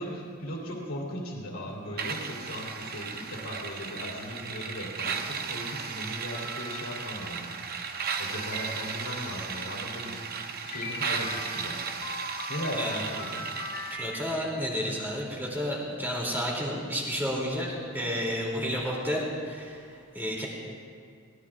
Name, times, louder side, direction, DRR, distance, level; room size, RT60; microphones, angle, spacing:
voice 1, 0.0-11.8 12.5-13.5, equal, 70° left, -3 dB, 2.9 m, -38 dB
sound 1, 2.0-14.0, right 6 dB, 45° right, 0.7 m, -35 dB
sound 2, 2.2-2.7 3.3-3.5 4.0-4.1 4.6-4.7 5.3-5.4 6.0-6.1 6.3-7.1 8.3-9.2 10.7-14.9, left 1 dB, 40° left, 1.7 m, -41 dB
voice 2, 13.9-20.5, equal, 10° right, -4 dB, 2.8 m, -31 dB
21.0 x 18.0 x 2.4 m, 2.3 s
head